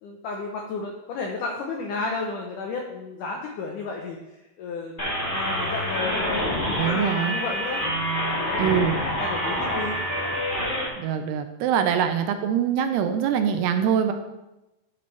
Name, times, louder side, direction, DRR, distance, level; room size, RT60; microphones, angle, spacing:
voice 1, 0.0-4.2 4.6-4.9 5.3-7.8 8.2-10.0 11.8-11.9, left 4 dB, 80° left, 0 dB, 1.9 m, -33 dB
sound 1, 5.0-10.9, equal, 35° left, 0.8 m, -27 dB
voice 2, 6.8-7.4 8.6-9.0 11.0-14.1, right 8 dB, 85° right, 7 dB, 2.7 m, -23 dB
12.0 x 7.0 x 3.4 m, 1.0 s
omnidirectional pair, 4.7 m